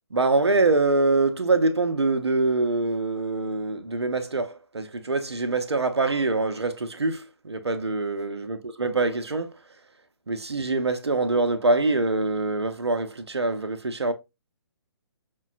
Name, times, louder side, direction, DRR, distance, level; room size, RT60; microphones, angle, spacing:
voice 1, 0.1-9.6 10.3-14.1, right 3 dB, 85° right, 0.7 m, -24 dB
5.4 x 2.2 x 2.4 m
figure-of-eight pair, 135°, 14 cm